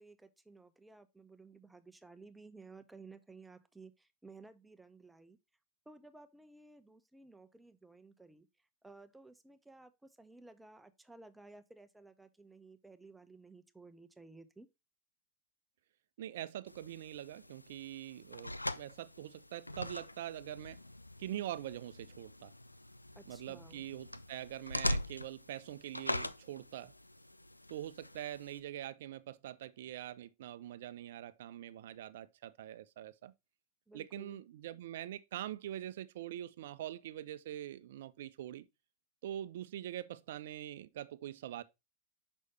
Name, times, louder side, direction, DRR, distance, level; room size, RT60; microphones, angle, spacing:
voice 1, 0.0-5.4 5.9-14.7 23.2-23.9 33.9-34.4, right 3 dB, 5° right, 0.6 m, -56 dB
voice 2, 16.2-20.8 21.2-22.5 23.3-26.9 27.7-33.3 33.9-38.7 39.2-41.6, right 12 dB, 55° right, 0.4 m, -44 dB
sound 1, 16.7-28.6, left 1 dB, 85° left, 0.3 m, -42 dB
6.3 x 5.4 x 3.2 m
figure-of-eight pair, 90°, 0 cm